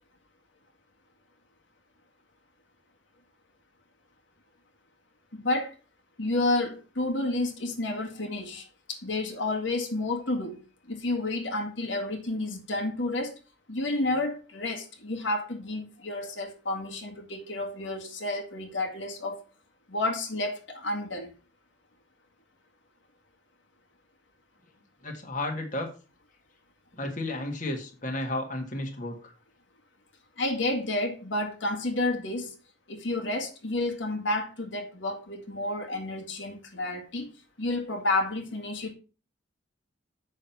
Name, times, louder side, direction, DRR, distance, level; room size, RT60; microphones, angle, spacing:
voice 1, 5.3-5.8 6.2-10.6 10.9-13.4 13.7-19.4 19.9-21.3 30.4-32.5 32.9-37.3 37.6-38.9, left 2 dB, 70° left, 1.8 m, -30 dB
voice 2, 25.0-25.9 27.0-29.3, left 1 dB, 40° left, 1.7 m, -33 dB
7.6 x 6.4 x 5.7 m
head